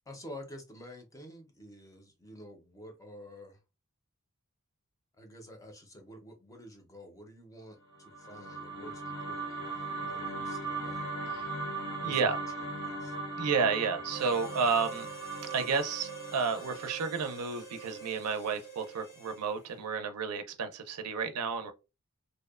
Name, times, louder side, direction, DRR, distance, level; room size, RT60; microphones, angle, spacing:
voice 1, 0.1-3.6 5.2-11.7 12.0-12.4 12.8-13.2, equal, 15° left, 0.5 m, -50 dB
sound 1, 7.9-18.2, right 3 dB, 70° left, 1.0 m, -39 dB
voice 2, 12.0-12.4 13.4-15.1 15.5-21.7, right 5 dB, 75° right, 0.5 m, -31 dB
Harmonica, 14.1-19.7, right 5 dB, 90° left, 1.3 m, -46 dB
2.6 x 2.1 x 2.3 m
head